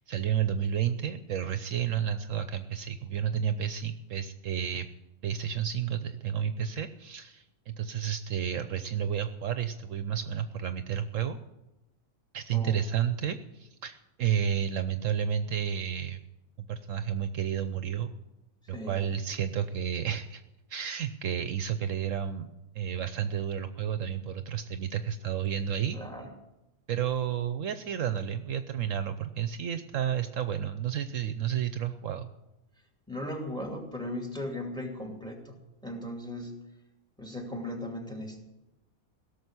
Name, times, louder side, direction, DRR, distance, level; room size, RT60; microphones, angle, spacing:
voice 1, 0.0-4.9 5.2-11.4 12.3-16.2 16.6-18.1 18.7-20.4 20.7-22.5 22.7-26.0 26.9-32.3, right 9 dB, 70° right, 10 dB, 1.0 m, -31 dB
voice 2, 25.9-26.3 33.1-35.6 35.8-36.6 37.2-38.4, left 1 dB, 5° left, 2 dB, 2.5 m, -37 dB
17.0 x 6.9 x 9.6 m, 0.96 s
omnidirectional pair, 1.5 m